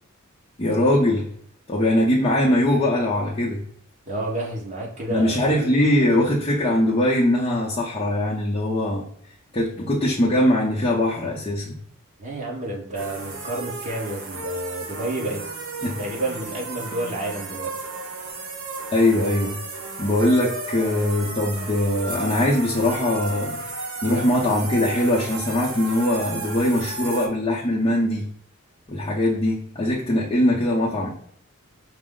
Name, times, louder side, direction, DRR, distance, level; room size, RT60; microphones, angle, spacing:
voice 1, 0.6-1.3 1.7-3.6 5.1-9.1 9.5-11.8 15.8-16.0 18.9-19.6 20.0-23.6 24.0-28.3 28.9-31.1, left 1 dB, 25° left, -6 dB, 0.6 m, -21 dB
voice 2, 4.1-5.5 12.2-15.4 16.0-17.7, right 2 dB, 35° right, -3 dB, 1.1 m, -30 dB
sound 1, 12.9-27.3, right 3 dB, 65° right, 0.8 m, -34 dB
5.1 x 2.0 x 3.7 m, 0.68 s
head